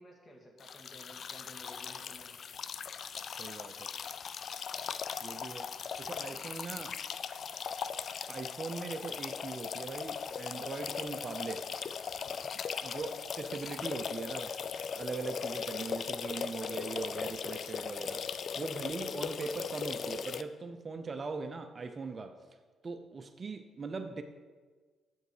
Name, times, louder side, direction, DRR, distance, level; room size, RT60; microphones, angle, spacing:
voice 1, 0.0-2.3 6.0-6.4 12.2-12.5, equal, 35° left, 1 dB, 2.1 m, -54 dB
sound 1, 0.6-20.4, left 6 dB, 55° left, 0.4 m, -39 dB
voice 2, 3.4-3.9 5.2-5.7 6.0-6.9 8.3-11.7 12.8-14.6 14.9-18.3 18.6-22.4 22.8-24.2, right 4 dB, 35° right, 8 dB, 0.6 m, -40 dB
8.0 x 7.7 x 4.8 m, 1.5 s
cardioid pair, 90°, 0 cm